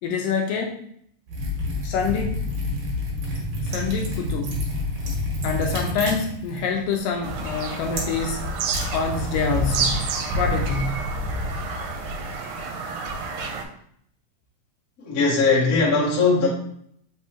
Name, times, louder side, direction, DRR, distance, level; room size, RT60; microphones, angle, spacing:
voice 1, 0.0-0.8 1.8-2.4 3.6-4.6 5.4-8.5 8.9-11.1, left 5 dB, 80° left, 2 dB, 2.0 m, -26 dB
Liquid, 1.3-9.6, left 1 dB, 60° right, 2.2 m, -29 dB
Bird vocalization bird call bird song, 7.2-13.6, right 2 dB, 85° right, 2.4 m, -28 dB
voice 2, 15.0-16.5, left 4 dB, 60° left, -7 dB, 0.9 m, -19 dB
5.3 x 3.4 x 2.9 m, 0.67 s
omnidirectional pair, 4.1 m